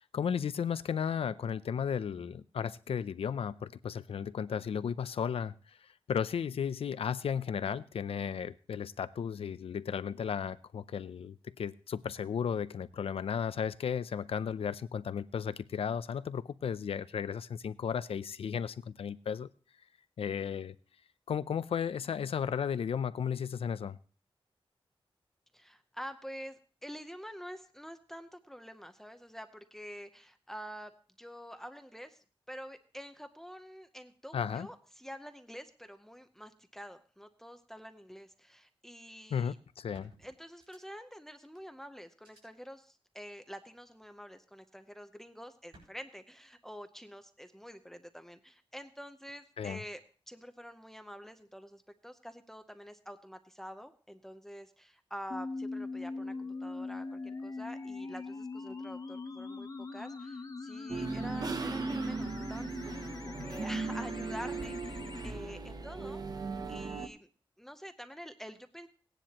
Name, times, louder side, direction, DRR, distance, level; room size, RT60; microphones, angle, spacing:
voice 1, 0.0-19.5 20.2-20.8 21.3-24.0 34.3-34.7 39.3-40.1 49.6-49.8, left 7 dB, 80° left, 15 dB, 0.5 m, -34 dB
voice 2, 25.5-30.9 31.2-39.6 40.2-50.0 50.3-66.2 66.7-67.3 67.6-68.9, equal, 5° left, 8 dB, 0.7 m, -47 dB
sound 1, 39.9-41.1 41.5-41.6 42.2-42.4 43.8-44.2 45.7-45.9, right 1 dB, 70° right, 5.6 m, -59 dB
sound 2, 55.3-65.3, left 3 dB, 40° left, 0.9 m, -41 dB
sound 3, 60.9-67.1, right 4 dB, 40° right, 0.8 m, -37 dB
17.5 x 10.0 x 2.9 m, 0.39 s
wide cardioid pair, 170°, 10 cm